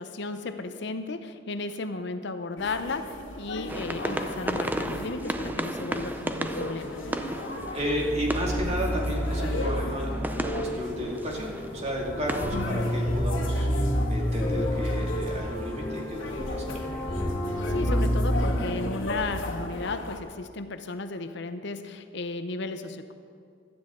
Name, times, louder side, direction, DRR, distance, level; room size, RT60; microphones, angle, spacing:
voice 1, 0.0-7.0 12.5-12.9 17.5-23.1, left 3 dB, 65° left, 9 dB, 0.7 m, -34 dB
sound 1, 2.6-20.2, left 2 dB, 90° left, 1.6 m, -38 dB
sound 2, 3.7-12.8, right 1 dB, 10° right, 0.5 m, -35 dB
sound 3, 7.7-19.8, equal, 30° left, 3.5 m, -29 dB
voice 2, 7.7-16.8, equal, 35° right, -2 dB, 2.5 m, -33 dB
17.5 x 12.5 x 3.8 m, 2.3 s
head